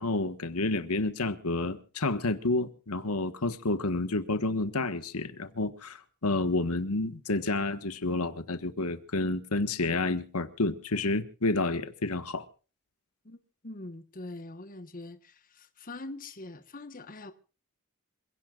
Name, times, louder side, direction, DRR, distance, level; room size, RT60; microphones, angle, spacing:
voice 1, 0.0-12.4, left 2 dB, 80° left, 1.4 m, -30 dB
voice 2, 13.6-17.3, left 2 dB, 40° left, 1.3 m, -43 dB
27.5 x 17.0 x 2.5 m
head